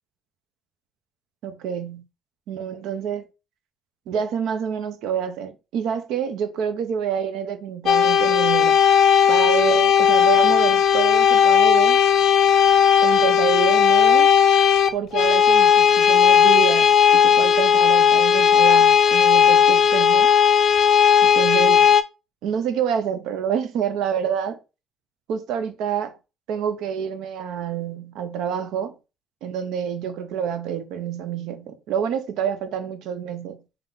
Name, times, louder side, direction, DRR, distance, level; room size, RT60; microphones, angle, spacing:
voice 1, 1.4-2.0 2.5-3.3 4.1-8.8 9.3-12.0 13.0-14.3 14.9-20.3 21.2-21.9 22.4-24.6 25.3-26.2 26.5-28.9 29.4-33.6, right 8 dB, 85° right, 0.6 m, -27 dB
sound 1, 7.9-22.0, left 8 dB, 60° left, 0.4 m, -16 dB
3.5 x 2.8 x 3.9 m
cardioid pair, 105°, 0 cm